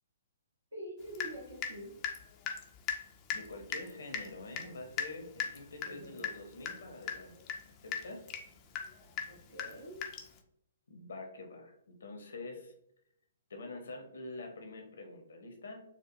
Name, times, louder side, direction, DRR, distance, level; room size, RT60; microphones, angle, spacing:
voice 1, 0.7-1.9 5.8-6.2 9.3-10.0, equal, 75° right, -1 dB, 1.2 m, -46 dB
Water tap faucet / Drip, 1.2-1.8 2.0-10.4, left 7 dB, 30° left, 0.4 m, -39 dB
voice 2, 3.3-7.3 7.8-8.3 10.9-12.7 13.5-15.8, left 2 dB, 65° left, 4 dB, 0.8 m, -46 dB
4.4 x 2.3 x 2.6 m, 0.73 s
figure-of-eight pair, 125°, 0 cm